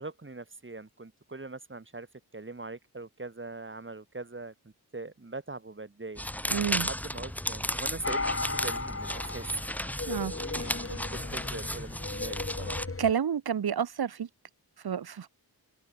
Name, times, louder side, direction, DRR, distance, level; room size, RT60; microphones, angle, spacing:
voice 1, 0.0-2.1 2.3-12.8, right 3 dB, 30° right, 3.7 m, -42 dB
sound 1, 6.2-12.9, equal, 5° left, 1.4 m, -34 dB
voice 2, 6.5-6.9 10.1-10.3 13.0-14.3 14.8-15.3, right 8 dB, 65° right, 1.2 m, -29 dB
sound 2, 8.0-13.1, left 3 dB, 35° left, 3.4 m, -36 dB
open air
wide cardioid pair, 85°, 40 cm